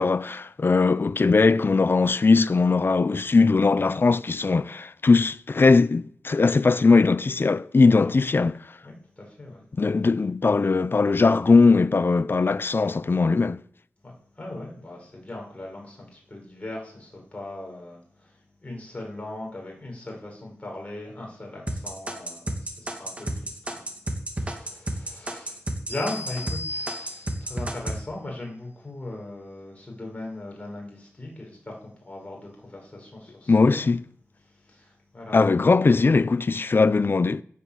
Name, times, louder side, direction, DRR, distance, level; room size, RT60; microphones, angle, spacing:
voice 1, 0.0-8.6 9.8-13.6 33.5-34.0 35.3-37.4, left 4 dB, 45° left, 0.6 m, -20 dB
voice 2, 8.8-9.6 14.0-24.0 24.3-33.9 34.4-35.4, left 2 dB, 25° left, 6.8 m, -39 dB
sound 1, 21.7-26.6 26.9-28.0, right 1 dB, 25° right, 2.7 m, -30 dB
sound 2, 25.9-27.6, left 2 dB, 45° right, 5.6 m, -36 dB
12.0 x 9.4 x 7.8 m
wide cardioid pair, 75°, 5 cm